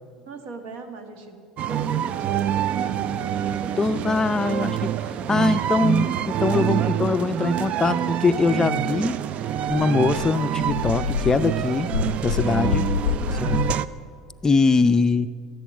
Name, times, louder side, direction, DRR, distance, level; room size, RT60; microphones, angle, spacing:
voice 1, 0.3-3.8 5.4-5.9 6.4-7.1 9.6-10.4 12.5-12.8 13.3-13.6, right 4 dB, 65° right, 6 dB, 1.7 m, -38 dB
sound 1, 1.6-13.9, right 10 dB, 45° right, 0.4 m, -26 dB
voice 2, 3.8-9.2 9.7-11.9 12.2-12.8 13.4-13.6 14.4-15.3, left 4 dB, 20° left, 11 dB, 0.5 m, -22 dB
Dog, 9.1-9.2 9.6-13.7, left 7 dB, 85° left, 0.5 m, -27 dB
15.5 x 7.8 x 7.6 m, 2.1 s
hypercardioid pair, 75°, 3 cm